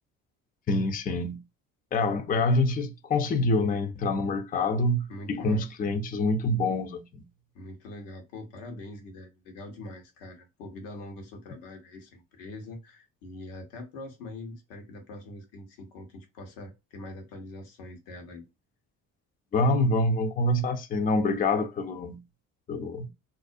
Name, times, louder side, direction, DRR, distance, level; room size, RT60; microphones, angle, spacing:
voice 1, 0.7-1.4 1.9-7.2 19.5-22.2 22.7-23.1, left 2 dB, 25° left, 0.4 m, -26 dB
voice 2, 5.1-5.7 7.5-18.5, left 2 dB, 85° left, 0.9 m, -43 dB
2.5 x 2.1 x 2.5 m
hypercardioid pair, 60°, 38 cm